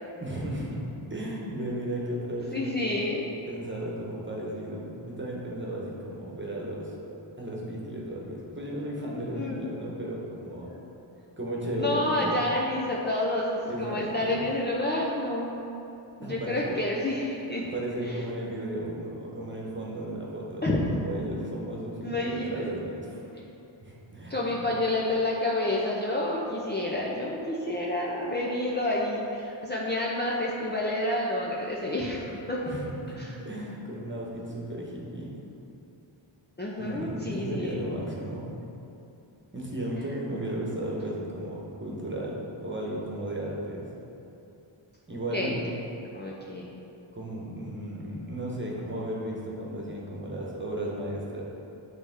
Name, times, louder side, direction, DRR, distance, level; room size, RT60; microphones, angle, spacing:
voice 1, 0.2-0.8 1.1-2.8 3.5-6.9 7.4-10.7 11.4-12.4 13.7-14.4 16.2-16.8 17.7-23.3 23.8-24.3 32.6-35.3 36.8-38.5 39.5-43.9 45.1-45.6 47.1-51.4, right 1 dB, 25° right, -4 dB, 1.2 m, -34 dB
voice 2, 2.5-3.3 9.2-9.7 10.7-10.8 11.8-15.5 16.2-17.6 18.1-18.2 20.6-20.8 22.0-22.6 24.3-32.7 33.2-33.4 36.6-37.8 40.1-40.2 45.3-45.5 46.1-46.7, left 1 dB, 20° left, -5 dB, 0.6 m, -29 dB
8.8 x 3.5 x 3.6 m, 2.8 s
wide cardioid pair, 85°, 49 cm